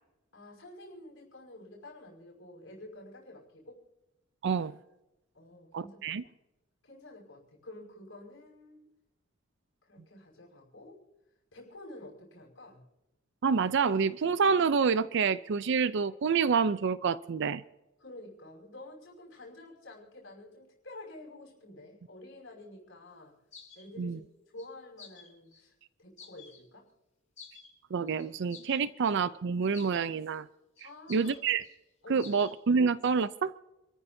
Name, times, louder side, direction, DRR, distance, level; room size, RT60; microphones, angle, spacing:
voice 1, 0.3-3.9 5.3-6.3 6.8-8.9 9.8-11.0 11.5-12.8 18.0-23.3 23.7-24.2 24.5-25.7 26.0-26.9 30.8-31.4 32.0-32.3, left 1 dB, 70° left, -1 dB, 5.6 m, -49 dB
voice 2, 4.4-4.7 5.7-6.2 13.4-17.6 24.0-24.2 27.9-30.5 31.1-31.6 32.1-33.5, right 5 dB, 60° right, 15 dB, 0.5 m, -27 dB
sound 1, 23.5-23.8 24.6-24.7 25.0-25.6 26.2-26.6 27.4-27.7 28.1-29.2 29.7-30.4 30.8-31.8 32.2-32.6 32.9-33.3, left 6 dB, 40° left, 5.2 m, -51 dB
28.5 x 14.0 x 2.7 m, 0.98 s
head